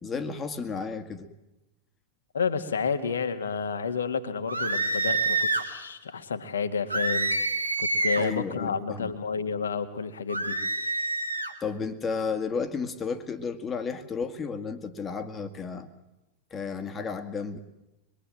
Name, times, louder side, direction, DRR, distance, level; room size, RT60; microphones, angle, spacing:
voice 1, 0.0-1.3 8.2-9.1 11.6-15.9 16.5-17.6, left 5 dB, 20° left, 8 dB, 2.1 m, -33 dB
voice 2, 2.3-7.3 7.8-10.6, left 5 dB, 70° left, 8 dB, 1.9 m, -30 dB
sound 1, 4.5-5.7 6.9-8.3 10.3-11.5, right 2 dB, 85° right, 2.1 m, -27 dB
24.5 x 22.5 x 7.7 m, 0.95 s
figure-of-eight pair, 90°, 0 cm